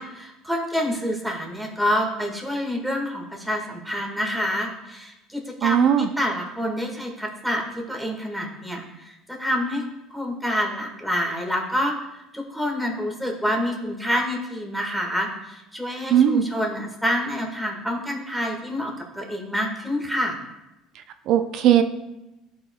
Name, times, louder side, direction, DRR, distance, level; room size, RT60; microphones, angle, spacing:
voice 1, 0.0-9.8 10.1-20.4, equal, ahead, 0 dB, 1.7 m, -27 dB
voice 2, 5.6-6.1 16.1-16.4 21.3-21.8, right 10 dB, 65° right, 9 dB, 0.6 m, -18 dB
11.5 x 4.5 x 2.3 m, 0.96 s
supercardioid pair, 80°, 0 cm